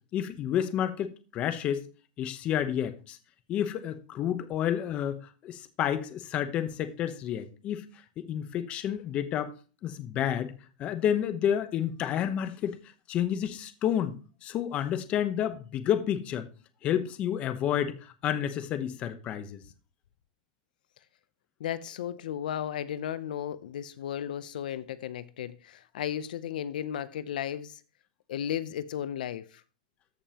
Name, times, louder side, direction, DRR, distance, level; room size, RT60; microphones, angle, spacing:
voice 1, 0.1-1.8 2.2-3.2 3.5-5.2 5.4-7.8 8.2-9.5 9.8-10.5 10.8-12.8 13.1-14.1 14.4-16.5 16.8-19.6, left 10 dB, 25° left, 0.9 m, -30 dB
voice 2, 21.6-27.8 28.3-29.6, left 10 dB, 80° left, 0.6 m, -34 dB
14.0 x 5.4 x 2.9 m
supercardioid pair, 160°, 5 cm